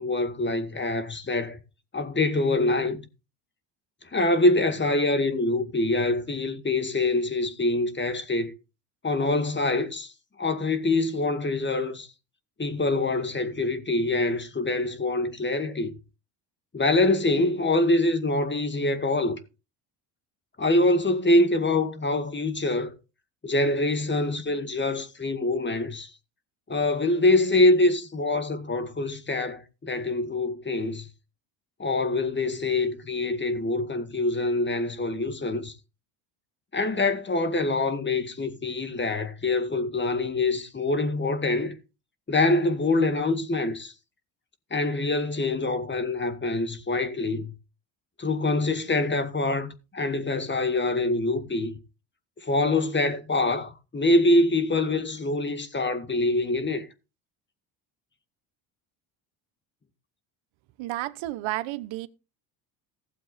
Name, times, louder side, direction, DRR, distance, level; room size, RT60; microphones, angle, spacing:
voice 1, 0.0-1.6 1.9-3.0 4.1-8.5 9.0-10.1 10.4-12.1 12.6-15.9 16.7-19.4 20.6-23.0 23.4-26.1 26.7-31.1 31.8-35.8 36.7-41.8 42.3-43.9 44.7-47.5 48.2-51.7 52.4-56.9, left 2 dB, 25° left, 2.0 m, -25 dB
voice 2, 60.8-62.1, right 17 dB, 80° right, 1.0 m, -31 dB
16.0 x 7.6 x 4.2 m
supercardioid pair, 90°, 46 cm